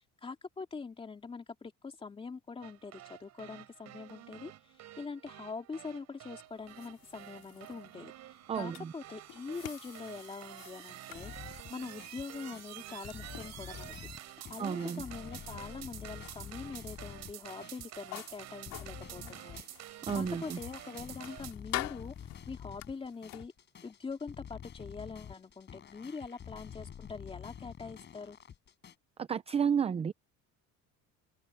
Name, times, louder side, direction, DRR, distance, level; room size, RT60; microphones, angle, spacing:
voice 1, 0.2-4.5 5.0-8.1 8.6-11.3 11.7-14.1 14.5-19.6 20.1-22.1 22.5-23.5 23.8-28.4, left 4 dB, 15° left, 2.8 m, -43 dB
sound 1, 2.6-21.5, right 14 dB, 50° right, 5.2 m, -49 dB
sound 2, 6.2-23.5, left 19 dB, 90° left, 2.9 m, -48 dB
voice 2, 8.5-8.9 14.6-15.0 20.1-20.6 29.2-30.1, right 7 dB, 20° right, 0.5 m, -31 dB
sound 3, 11.1-28.9, left 8 dB, 30° left, 6.2 m, -49 dB
open air
cardioid pair, 170°, 34 cm